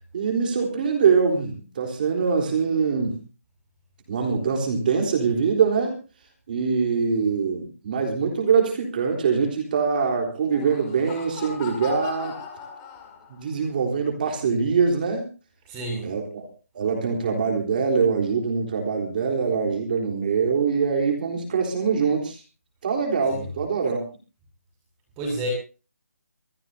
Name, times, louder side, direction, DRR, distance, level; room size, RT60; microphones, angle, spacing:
voice 1, 0.1-3.2 4.1-6.0 6.5-12.3 13.3-15.3 16.0-16.4 16.7-22.4 22.8-24.0, right 5 dB, 35° right, 2 dB, 3.8 m, -23 dB
Laughter, 10.3-13.5, left 7 dB, 15° left, 2.5 m, -38 dB
voice 2, 15.7-16.1 23.3-23.5 25.2-25.5, right 1 dB, 15° right, -2 dB, 6.2 m, -29 dB
25.0 x 15.0 x 2.8 m, 0.34 s
hypercardioid pair, 165°, 9 cm